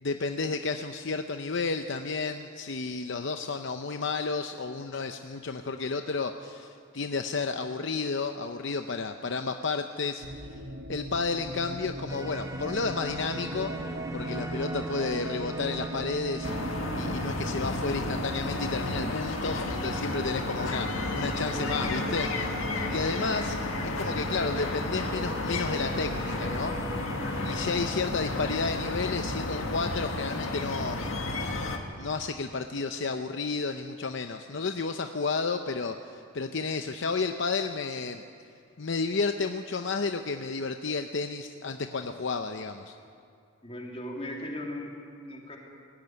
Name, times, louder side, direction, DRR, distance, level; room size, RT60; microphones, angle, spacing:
voice 1, 0.0-10.3 10.9-13.7 14.1-16.5 16.9-22.6 22.9-23.6 23.8-26.8 27.4-31.0 32.0-38.2 38.8-43.0, left 4 dB, 60° left, 7 dB, 0.7 m, -32 dB
sound 1, 10.2-30.1, right 1 dB, 50° right, 1.1 m, -42 dB
sound 2, 12.1-27.7, right 1 dB, 15° right, 1.6 m, -39 dB
sound 3, 16.4-31.8, left 2 dB, 80° left, 1.9 m, -32 dB
voice 2, 43.6-45.6, left 1 dB, 30° left, -1 dB, 3.1 m, -38 dB
19.0 x 14.5 x 9.5 m, 2.3 s
head